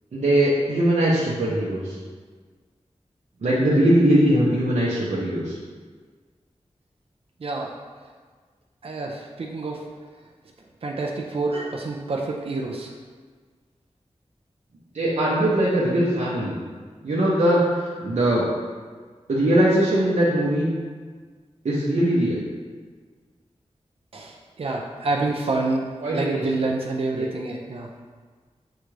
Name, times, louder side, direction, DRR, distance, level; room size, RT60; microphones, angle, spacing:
voice 1, 0.1-2.0 3.4-5.6 14.9-16.6 17.0-18.5 19.3-20.7 21.6-22.4 26.0-26.5 27.1-27.3, right 1 dB, 90° right, -7 dB, 0.7 m, -21 dB
voice 2, 7.4-7.7 8.8-9.8 10.8-12.9 24.1-25.9 26.1-27.9, right 3 dB, 55° right, 0 dB, 0.4 m, -27 dB
6.5 x 2.4 x 3.1 m, 1.5 s
wide cardioid pair, 80°, 12 cm